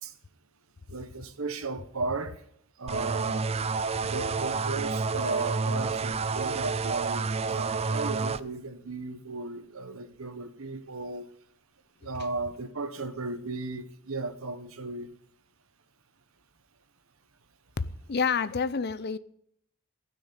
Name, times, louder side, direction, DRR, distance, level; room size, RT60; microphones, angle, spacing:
voice 1, 0.9-2.4 2.8-3.4 4.0-11.3 12.0-15.1, right 3 dB, 75° right, 1.3 m, -35 dB
sound 1, 2.9-8.4, right 4 dB, 30° right, 0.4 m, -29 dB
voice 2, 17.8-19.2, left 5 dB, 50° left, 0.6 m, -28 dB
16.0 x 6.4 x 9.9 m
head